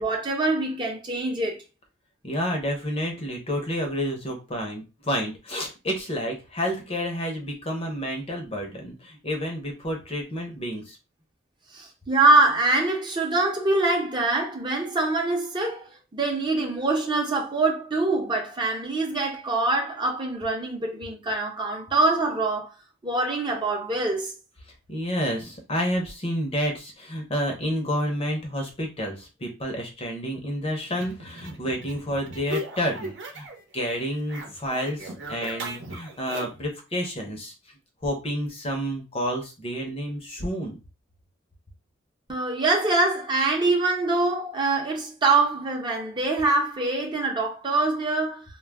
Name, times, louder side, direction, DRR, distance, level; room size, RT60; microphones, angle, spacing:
voice 1, 0.0-1.6 11.7-22.7 23.0-24.3 42.3-48.4, right 2 dB, 25° right, 0.7 m, -24 dB
voice 2, 2.2-11.0 24.9-33.5 33.7-37.5 38.0-40.8, equal, 30° left, 0.7 m, -29 dB
sound 1, 31.0-33.6 33.9-36.7, right 1 dB, 65° right, 0.8 m, -37 dB
2.2 x 2.2 x 3.3 m
head